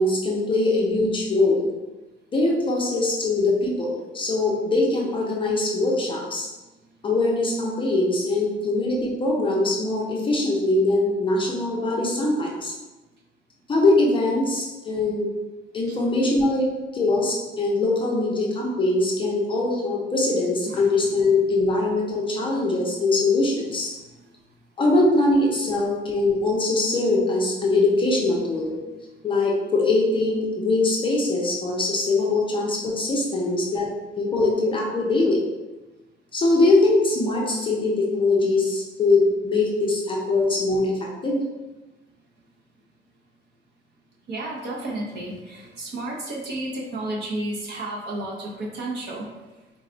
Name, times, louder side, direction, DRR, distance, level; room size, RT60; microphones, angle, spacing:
voice 1, 0.0-1.7 2.3-6.5 7.0-12.7 13.7-15.3 15.7-16.7 16.9-23.9 24.8-28.7 29.2-33.9 34.2-35.4 36.3-41.4, left 2 dB, 25° left, -2 dB, 0.6 m, -22 dB
voice 2, 15.9-16.3 20.6-20.9 23.7-23.8 24.1-24.3 33.3-33.5 44.3-49.3, right 1 dB, 55° right, -3 dB, 0.9 m, -32 dB
3.9 x 2.3 x 3.8 m, 1.1 s
cardioid pair, 175°, 20 cm